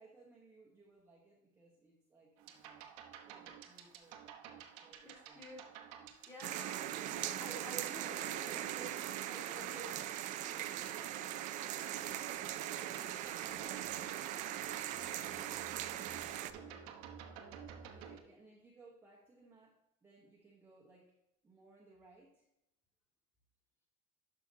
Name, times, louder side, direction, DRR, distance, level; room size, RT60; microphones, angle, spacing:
voice 1, 0.0-2.9 3.2-5.5 6.0-6.2 17.9-21.1 21.4-22.5, right 3 dB, 10° right, -4 dB, 1.1 m, -63 dB
sound 1, 2.4-18.2, right 8 dB, 85° right, 1.1 m, -52 dB
voice 2, 5.0-5.6 6.3-10.1 13.6-14.1 16.6-16.8, equal, 15° left, -3 dB, 2.6 m, -52 dB
sound 2, 6.4-16.5, right 12 dB, 45° right, 0.4 m, -40 dB
Brass instrument, 11.0-15.9, left 4 dB, 65° left, 1.1 m, -62 dB
11.0 x 5.8 x 2.8 m, 0.87 s
cardioid pair, 155°, 18 cm